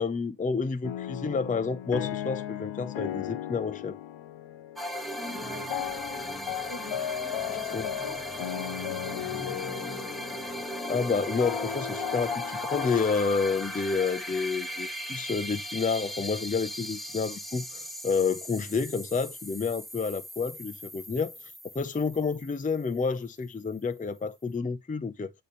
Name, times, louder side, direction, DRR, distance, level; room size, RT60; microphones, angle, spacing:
voice 1, 0.0-4.0 7.7-7.9 10.9-21.4 21.6-25.3, left 5 dB, 20° left, 0.5 m, -29 dB
sound 1, 0.8-14.8, left 11 dB, 90° left, 0.6 m, -37 dB
sound 2, 4.8-23.2, left 1 dB, ahead, 0.9 m, -38 dB
voice 2, 5.3-5.8 6.5-7.1 7.5-10.4, left 5 dB, 70° left, 1.3 m, -45 dB
8.5 x 3.2 x 4.1 m
wide cardioid pair, 110°, 44 cm